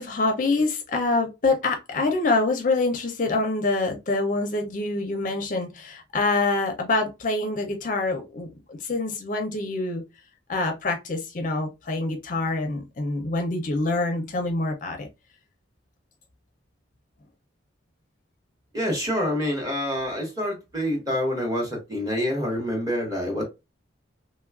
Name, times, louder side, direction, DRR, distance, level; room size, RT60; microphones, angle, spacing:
voice 1, 0.0-10.0 10.5-15.1, left 3 dB, 40° left, 0.5 m, -26 dB
voice 2, 18.7-23.4, equal, 20° right, 1.0 m, -27 dB
3.1 x 2.3 x 2.2 m
head